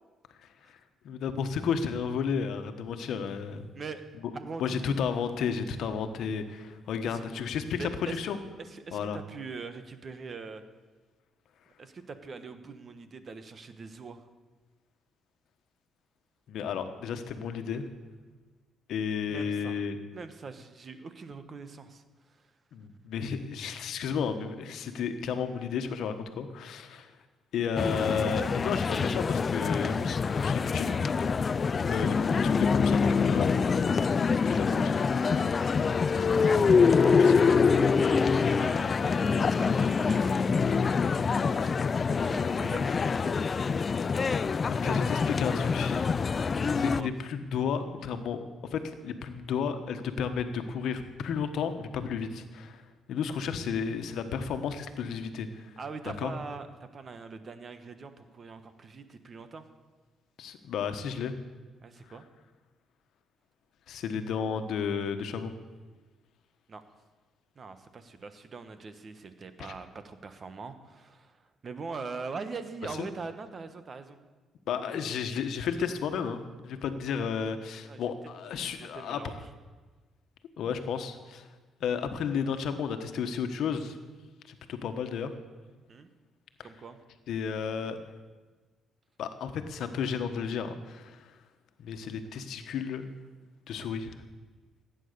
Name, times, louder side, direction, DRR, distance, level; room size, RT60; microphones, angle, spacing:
voice 1, 1.0-3.7 4.6-8.4 8.9-9.2 16.5-17.9 18.9-20.0 22.7-27.1 27.5-31.0 31.9-34.1 34.4-34.9 37.2-37.5 44.7-46.1 46.7-48.4 48.7-52.8 53.1-55.7 56.2-56.3 60.4-61.3 63.9-65.5 73.0-73.1 74.7-79.3 80.6-81.4 81.8-84.0 84.7-85.3 87.3-88.0 89.2-91.2 91.8-93.1 93.7-94.1, left 6 dB, 75° left, 8 dB, 1.3 m, -32 dB
voice 2, 4.3-4.8 7.0-7.2 7.8-8.2 8.6-10.6 11.8-14.3 19.3-19.8 20.1-22.5 34.4-35.6 36.9-37.3 37.9-41.8 42.1-43.6 46.7-47.1 55.8-59.6 61.8-62.2 66.7-66.8 67.5-74.2 74.9-75.0 77.8-78.0 78.5-79.5 85.9-86.1 86.6-87.0, right 4 dB, 40° right, 10 dB, 1.2 m, -43 dB
sound 1, 27.8-47.0, left 5 dB, 40° left, 0.4 m, -25 dB
15.5 x 9.2 x 6.8 m, 1.3 s
cardioid pair, 90°, 0 cm